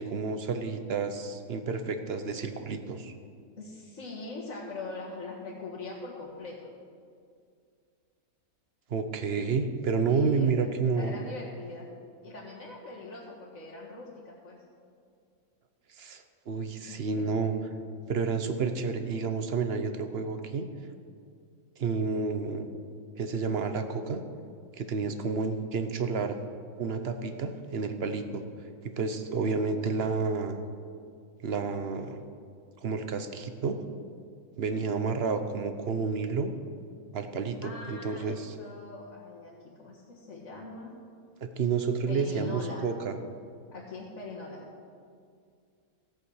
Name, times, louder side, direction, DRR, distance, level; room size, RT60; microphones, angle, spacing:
voice 1, 0.0-3.1 8.9-11.2 16.0-17.5 18.1-20.7 21.8-22.7 23.2-24.2 24.8-26.4 26.8-28.4 28.8-30.6 31.4-32.2 32.8-33.8 34.6-36.5 37.1-38.5 41.4-43.2, right 5 dB, 50° right, 8 dB, 0.9 m, -30 dB
voice 2, 3.6-6.7 10.1-11.9 12.2-14.6 16.9-17.5 18.0-18.1 37.6-40.9 42.1-42.9 43.7-44.6, left 3 dB, 55° left, -8 dB, 2.1 m, -42 dB
15.5 x 8.3 x 6.4 m, 2.3 s
omnidirectional pair, 1.6 m